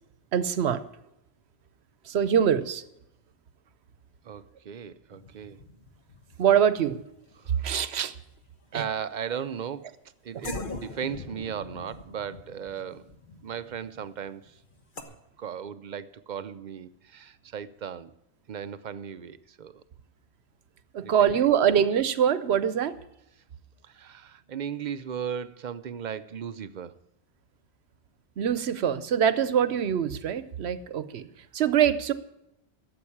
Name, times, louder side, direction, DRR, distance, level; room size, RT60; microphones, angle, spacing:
voice 1, 0.3-0.8 2.1-2.8 6.4-7.0 7.6-8.1 8.7-8.8 20.9-22.9 28.4-31.3 31.5-32.1, right 9 dB, 75° right, 1.0 m, -24 dB
voice 2, 4.2-5.6 7.4-7.7 8.7-10.0 10.2-13.1 13.4-14.6 15.1-18.1 18.5-19.8 21.0-21.5 23.8-26.9, right 8 dB, 50° right, 0.6 m, -37 dB
sound 1, 5.1-8.8 9.5-9.6 10.4-15.0, left 2 dB, 50° left, 1.4 m, -42 dB
13.5 x 7.8 x 8.6 m
omnidirectional pair, 1.1 m